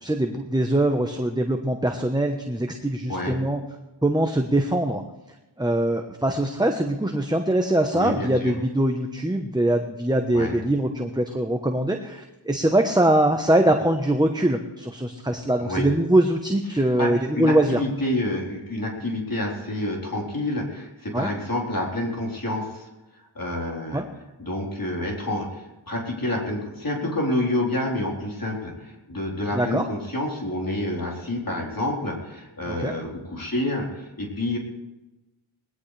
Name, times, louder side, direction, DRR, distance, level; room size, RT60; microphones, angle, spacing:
voice 1, 0.0-3.6 4.0-5.0 5.6-17.8 21.1-21.3 23.9-24.0 29.5-29.8 32.7-32.9, right 1 dB, 10° right, 4 dB, 1.0 m, -22 dB
voice 2, 7.9-8.5 10.3-10.6 15.6-15.9 16.7-22.9 23.3-24.0 24.4-34.6, left 1 dB, 45° left, -2 dB, 4.1 m, -28 dB
20.0 x 17.0 x 3.4 m, 1.0 s
wide cardioid pair, 70°, 46 cm